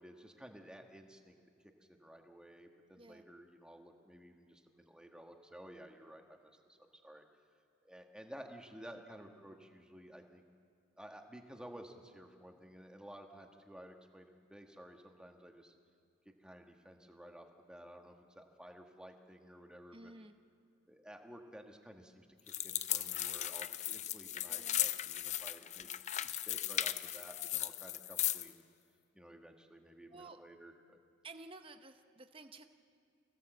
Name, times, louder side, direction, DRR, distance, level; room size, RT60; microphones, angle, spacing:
voice 1, 0.0-7.2 7.8-10.4 11.0-15.7 16.2-20.2 20.9-28.6 29.1-31.0, equal, 5° right, 3 dB, 1.6 m, -54 dB
voice 2, 19.9-20.4 24.5-24.8 25.8-25.9 30.1-30.4 31.2-32.7, right 3 dB, 25° right, 7 dB, 0.8 m, -53 dB
sound 1, 22.5-28.5, left 12 dB, 35° left, 0.5 m, -37 dB
24.5 x 17.0 x 7.9 m, 2.4 s
head